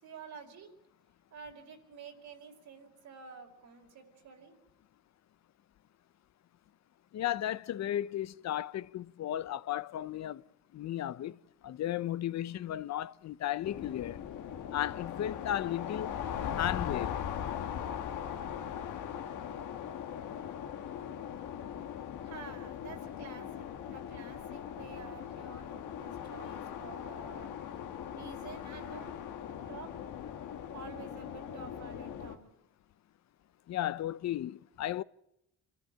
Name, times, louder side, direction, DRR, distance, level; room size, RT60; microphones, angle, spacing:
voice 1, 0.0-0.7 1.3-4.6 22.2-27.9 28.1-29.2 29.7-29.9 30.7-32.5, right 5 dB, 75° right, 4.9 m, -50 dB
voice 2, 7.1-10.4 10.7-11.4 11.6-14.3 14.7-16.1 16.6-17.1 33.7-35.0, left 12 dB, 60° left, 0.7 m, -34 dB
sound 1, 13.6-32.4, left 9 dB, 85° left, 1.7 m, -40 dB
26.5 x 14.0 x 8.7 m
cardioid pair, 90°, 30 cm